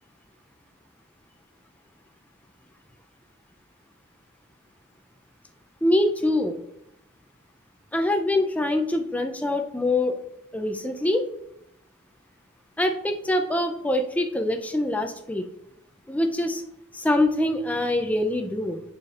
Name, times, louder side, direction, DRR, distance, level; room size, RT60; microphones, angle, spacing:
voice 1, 5.8-6.6 7.9-10.2 10.5-11.2 12.8-15.5 16.1-16.6 16.9-18.8, left 1 dB, 10° left, 5 dB, 0.4 m, -24 dB
9.5 x 4.3 x 2.5 m, 0.79 s
head